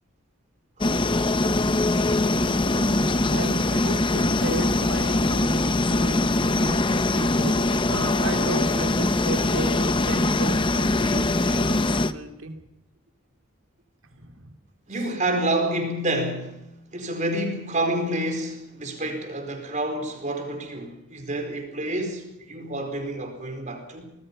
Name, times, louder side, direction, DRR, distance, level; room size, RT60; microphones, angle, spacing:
sound 1, 0.8-12.1, left 2 dB, 25° left, 0.8 m, -22 dB
voice 1, 2.5-12.5 14.1-14.5, right 2 dB, 70° right, 2.9 m, -34 dB
voice 2, 14.9-24.0, right 1 dB, 35° right, 4.6 m, -28 dB
25.5 x 20.0 x 5.5 m
head